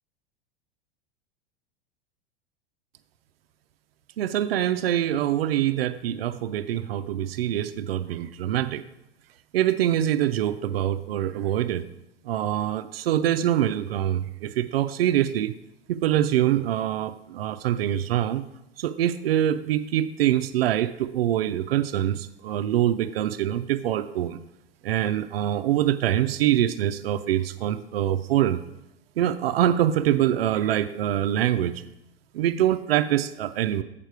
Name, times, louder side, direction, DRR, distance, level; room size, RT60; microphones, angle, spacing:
voice 1, 4.2-8.8 9.5-11.9 12.2-15.5 15.9-18.5 18.8-24.4 24.8-28.6 29.2-31.8 32.3-33.8, right 11 dB, 85° right, 10 dB, 0.5 m, -24 dB
7.3 x 6.7 x 4.7 m, 0.86 s
hypercardioid pair, 105°, 29 cm